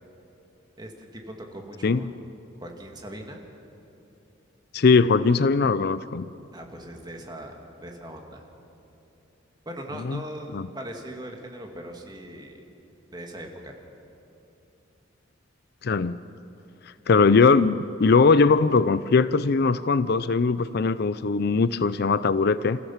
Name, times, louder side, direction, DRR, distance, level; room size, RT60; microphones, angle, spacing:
voice 1, 0.8-2.2 2.6-3.5 6.5-7.5 7.8-8.4 9.7-12.6 13.1-13.7, right 1 dB, 20° right, 2 dB, 2.2 m, -40 dB
voice 2, 4.7-6.3 10.0-10.2 10.5-10.7 15.8-16.2 17.1-22.8, left 4 dB, 55° left, 15 dB, 0.5 m, -20 dB
28.5 x 15.0 x 7.3 m, 2.9 s
head